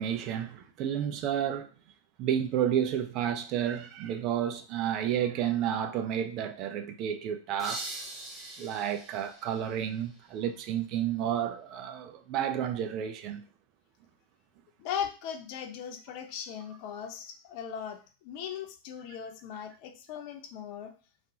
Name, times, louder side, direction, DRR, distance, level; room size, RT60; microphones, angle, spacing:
voice 1, 0.0-1.7 2.2-7.9 8.6-13.5, right 9 dB, 40° right, 0.3 m, -31 dB
sound 1, 7.6-10.4, right 2 dB, 20° right, 0.7 m, -42 dB
voice 2, 14.8-20.9, left 8 dB, 45° left, 0.4 m, -38 dB
2.4 x 2.2 x 2.8 m
figure-of-eight pair, 90°, 0 cm